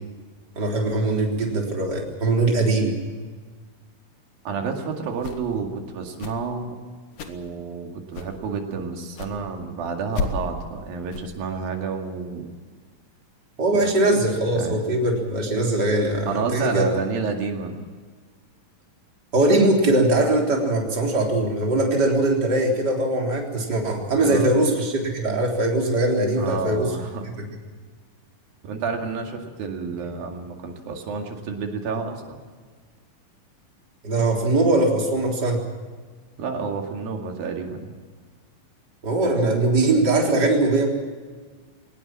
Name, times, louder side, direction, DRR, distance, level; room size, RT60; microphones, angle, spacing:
voice 1, 0.6-3.0 13.6-16.9 19.3-26.9 34.0-35.6 39.0-40.9, right 2 dB, 30° right, 0 dB, 4.1 m, -21 dB
voice 2, 4.5-6.8 7.3-12.5 13.8-14.8 16.3-17.8 24.1-24.6 26.4-27.4 28.6-32.4 36.4-37.9, right 5 dB, 85° right, 2 dB, 4.0 m, -30 dB
sound 1, 5.1-5.6 6.1-6.5 7.1-7.5 8.1-8.4 9.1-9.4 10.1-10.5 11.1-11.2, left 4 dB, 65° left, 3.1 m, -32 dB
23.0 x 19.5 x 7.5 m, 1.5 s
omnidirectional pair, 4.0 m